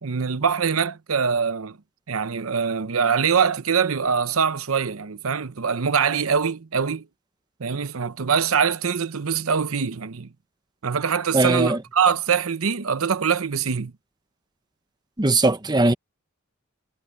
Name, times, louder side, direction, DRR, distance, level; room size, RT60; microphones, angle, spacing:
voice 1, 0.0-1.8 2.1-7.0 7.6-10.3 10.8-13.9, right 6 dB, 85° right, 0.8 m, -23 dB
voice 2, 11.3-11.8 15.2-15.9, right 2 dB, 20° right, 1.0 m, -19 dB
head